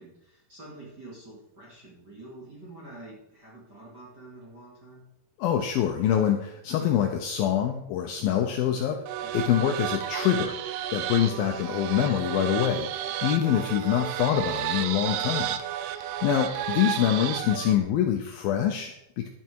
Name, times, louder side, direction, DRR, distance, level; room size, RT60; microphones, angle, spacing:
voice 1, 0.0-5.0 9.2-9.5 13.4-13.6, right 2 dB, 30° right, -4 dB, 2.3 m, -47 dB
voice 2, 5.4-9.0 9.3-10.6 10.9-15.6 16.0-19.3, left 10 dB, 75° left, 4 dB, 2.2 m, -25 dB
sound 1, 9.1-17.8, right 11 dB, 80° right, 2.6 m, -32 dB
11.5 x 9.0 x 4.6 m, 0.81 s
omnidirectional pair, 4.9 m